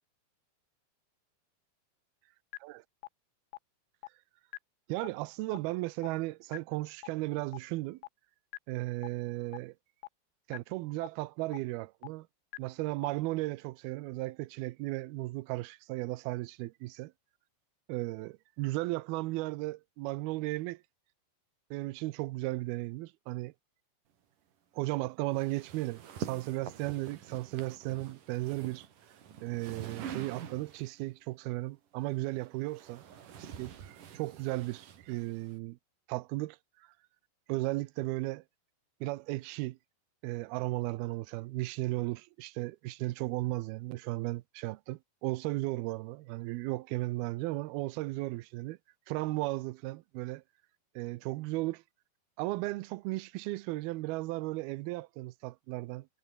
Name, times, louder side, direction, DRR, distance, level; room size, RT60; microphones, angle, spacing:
sound 1, 2.5-2.6 3.0-3.1 3.5-3.6 4.0-4.1 4.5-4.6 5.0-5.1 5.5-5.6 6.0-6.1 6.5-6.6 7.0-7.1 7.5-7.6 8.0-8.1 8.5-8.6 9.0-9.1 9.5-9.6 10.0-10.1 10.5-10.6 11.0-11.1 11.5-11.6 12.0-12.1 12.5-12.6 13.0-13.1, left 21 dB, 90° left, 2.9 m, -42 dB
voice 1, 4.9-8.0 8.7-9.7 10.5-12.3 12.6-17.1 17.9-20.8 21.7-23.5 24.7-28.9 29.4-33.0 33.4-35.8 36.1-36.6 37.5-38.4 39.0-39.8 40.2-48.8 49.1-50.4 51.0-51.8 52.4-56.1, right 20 dB, 80° right, 2.5 m, -35 dB
sound 2, 25.3-31.0 32.0-35.6, right 8 dB, 55° right, 3.8 m, -46 dB
omnidirectional pair, 4.7 m